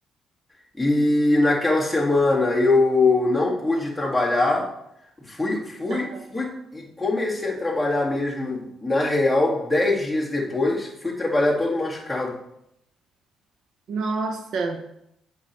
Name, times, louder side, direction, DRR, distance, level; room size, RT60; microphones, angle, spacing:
voice 1, 0.8-4.7 5.3-12.4, left 2 dB, 5° left, -4 dB, 1.8 m, -22 dB
voice 2, 5.9-6.2 13.9-14.8, right 3 dB, 70° right, 5 dB, 0.7 m, -28 dB
8.3 x 5.5 x 3.0 m, 0.79 s
cardioid pair, 90°, 0 cm